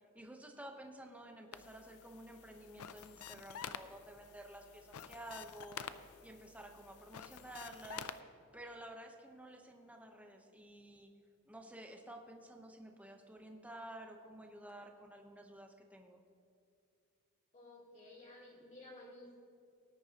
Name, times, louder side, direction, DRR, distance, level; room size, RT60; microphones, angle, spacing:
voice 1, 0.1-5.9 6.2-8.1 8.5-11.1 11.5-16.2, right 1 dB, 5° right, 3 dB, 0.9 m, -52 dB
sound 1, 1.5-8.2, left 8 dB, 70° left, 0.5 m, -50 dB
voice 2, 17.5-19.4, left 1 dB, 35° left, -4 dB, 3.0 m, -54 dB
18.5 x 10.0 x 2.9 m, 2.5 s
head